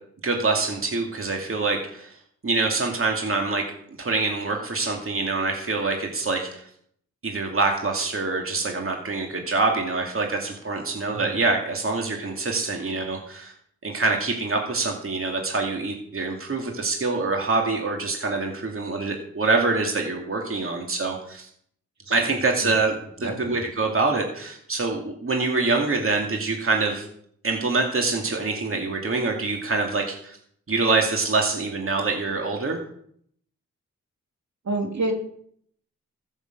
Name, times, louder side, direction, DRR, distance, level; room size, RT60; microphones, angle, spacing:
voice 1, 0.2-2.1 2.4-3.6 4.0-6.6 7.2-13.5 13.8-21.5 22.1-27.1 27.4-30.4 30.7-32.8, right 3 dB, 45° right, 1 dB, 2.5 m, -25 dB
voice 2, 23.2-23.6 34.6-35.1, right 2 dB, 65° right, 3 dB, 2.9 m, -29 dB
14.5 x 7.3 x 7.9 m, 0.66 s
cardioid pair, 65°, 30 cm